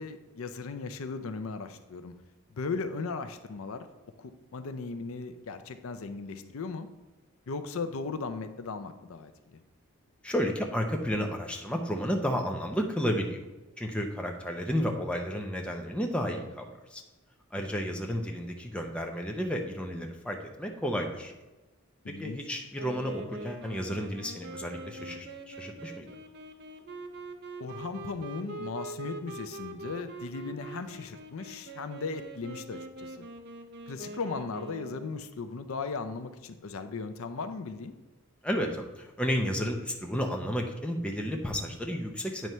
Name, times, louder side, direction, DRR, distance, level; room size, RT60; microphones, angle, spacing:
voice 1, 0.0-2.1 2.5-3.9 4.2-6.9 7.5-9.6 22.0-22.4 27.6-33.2 33.9-37.9, left 4 dB, 65° left, 9 dB, 0.5 m, -37 dB
voice 2, 10.2-13.4 13.8-17.0 17.5-21.3 22.1-26.1 38.4-42.5, equal, 5° left, 1 dB, 0.6 m, -32 dB
Wind instrument woodwind instrument, 22.7-35.2, right 2 dB, 50° right, 0.5 m, -43 dB
9.1 x 3.1 x 5.5 m, 1.1 s
head